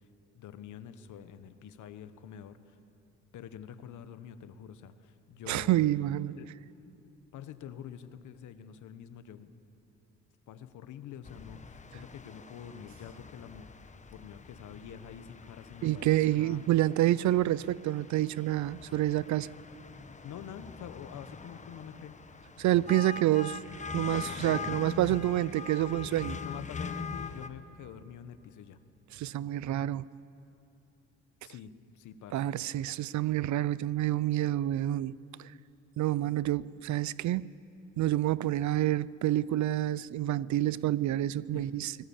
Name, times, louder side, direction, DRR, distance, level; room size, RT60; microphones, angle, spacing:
voice 1, 0.3-2.8 3.3-5.7 6.4-6.5 7.3-9.5 10.5-13.7 14.1-16.6 20.2-22.2 26.3-28.8 31.4-32.4 41.5-41.7, left 9 dB, 75° left, 1.2 m, -46 dB
voice 2, 5.5-6.4 15.8-19.5 22.6-23.6 23.9-26.4 29.1-30.0 32.3-35.1 36.0-37.5 38.0-42.0, right 14 dB, 70° right, 0.6 m, -28 dB
sound 1, 11.2-27.5, left 5 dB, 25° left, 1.1 m, -43 dB
23.0 x 20.5 x 7.2 m
cardioid pair, 90°, 30 cm